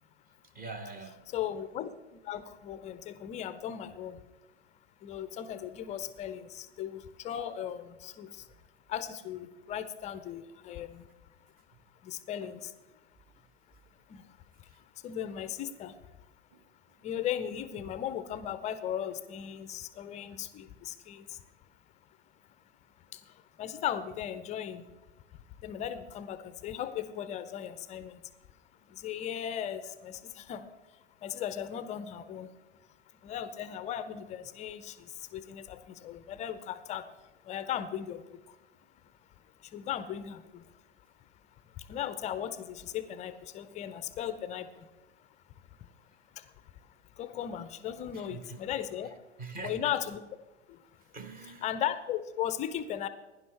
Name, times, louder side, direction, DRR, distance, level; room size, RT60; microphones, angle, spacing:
voice 1, 0.5-1.2 8.3-8.4 12.4-12.5 14.7-14.8 16.5-16.6 48.1-48.6 49.4-49.9 51.1-51.7, right 3 dB, 25° right, 9 dB, 1.2 m, -43 dB
voice 2, 1.3-1.9 2.2-4.2 5.0-8.4 8.9-11.0 12.0-12.7 14.1-14.2 15.0-15.9 17.0-21.4 23.1-23.2 23.6-24.8 25.6-28.2 28.9-30.7 31.2-32.5 33.2-37.0 37.5-38.2 39.7-40.6 41.9-44.7 47.2-49.1 49.6-50.2 51.6-53.1, left 10 dB, 20° left, 12 dB, 0.5 m, -37 dB
16.5 x 10.5 x 3.3 m, 1.1 s
figure-of-eight pair, 95°, 36 cm